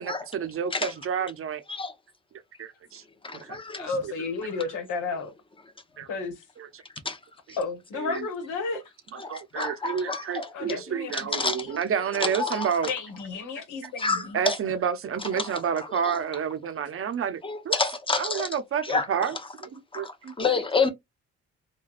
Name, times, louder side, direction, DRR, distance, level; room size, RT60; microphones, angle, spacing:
voice 1, 0.0-1.6 2.6-3.0 3.4-3.6 4.0-4.1 6.0-6.1 6.6-6.7 7.9-8.3 9.3-12.9 13.8-13.9 14.3-17.8 18.2-19.7 19.9-20.3, right 7 dB, 45° right, 0.5 m, -30 dB
voice 2, 3.2-3.9 7.0-7.2 9.2-10.8 11.1-11.8 12.2-12.9 14.0-14.6 15.3-16.2 17.4-18.5 18.8-19.3 19.9-20.9, left 4 dB, 15° left, 0.8 m, -29 dB
voice 3, 3.8-5.3 6.1-6.4 7.6-8.8 10.5-11.7 12.8-14.4, left 4 dB, 85° left, 1.1 m, -32 dB
3.1 x 2.3 x 2.3 m
cardioid pair, 90°, 30 cm